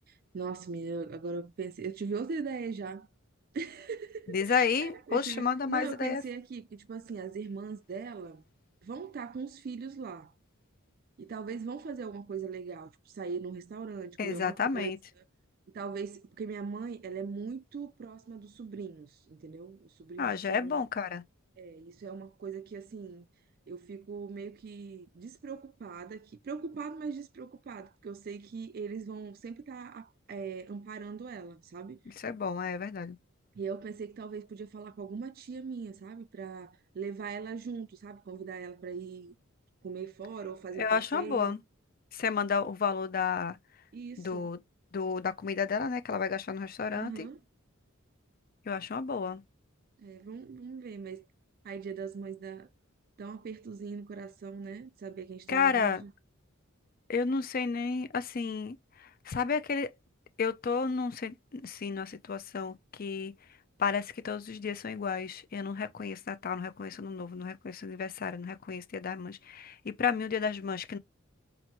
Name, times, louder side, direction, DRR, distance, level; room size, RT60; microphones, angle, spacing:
voice 1, 0.1-3.1 3.5-8.4 8.8-10.3 11.2-14.9 15.2-15.3 15.7-20.8 21.6-23.3 23.7-32.0 33.5-39.4 39.8-41.5 43.9-44.5 46.9-47.4 50.0-51.3 51.6-52.7 53.2-56.1, right 5 dB, 45° right, 0.3 m, -40 dB
voice 2, 4.3-6.2 14.2-15.0 20.2-21.2 32.2-33.2 40.8-41.6 42.1-43.6 44.2-44.6 44.9-47.3 48.7-49.4 55.5-56.0 57.1-58.8 59.3-59.9 60.4-63.3 63.8-71.0, left 5 dB, 45° left, 0.5 m, -31 dB
4.4 x 2.5 x 2.9 m
head